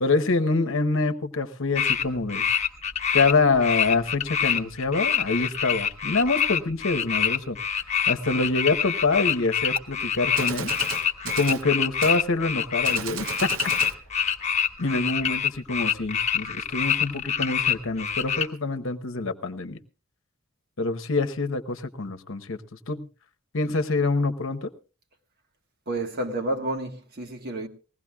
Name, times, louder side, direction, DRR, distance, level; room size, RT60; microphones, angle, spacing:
voice 1, 0.0-2.4 3.1-7.6 8.1-10.7 11.3-13.5 14.8-19.8 20.8-22.6 22.9-23.1 23.5-24.7, left 3 dB, 65° left, 1.0 m, -25 dB
sound 1, 1.7-2.0 2.3-3.3 3.6-18.5, left 8 dB, 30° left, 1.2 m, -26 dB
Gunshot gunfire, 9.8-9.9 10.4-11.7 12.0-12.2 12.8-14.0, right 6 dB, 65° right, 0.9 m, -34 dB
voice 2, 25.9-27.7, right 1 dB, 50° right, 1.6 m, -30 dB
20.5 x 16.5 x 2.3 m
head